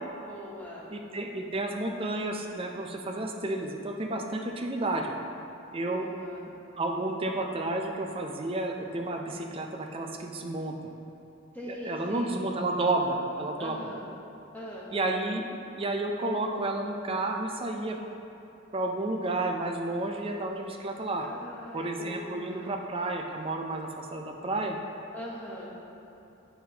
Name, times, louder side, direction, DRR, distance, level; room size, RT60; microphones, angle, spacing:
voice 1, 0.3-0.9 5.9-6.4 11.5-12.4 13.6-14.1 14.5-14.9 21.2-22.8 25.1-25.7, equal, 10° left, -5 dB, 1.0 m, -42 dB
voice 2, 0.9-5.1 5.7-6.1 6.8-10.7 11.7-13.8 14.9-15.4 15.8-18.0 18.7-21.3 21.7-24.8, right 2 dB, 25° right, 2 dB, 0.4 m, -31 dB
7.6 x 5.6 x 2.8 m, 2.8 s
head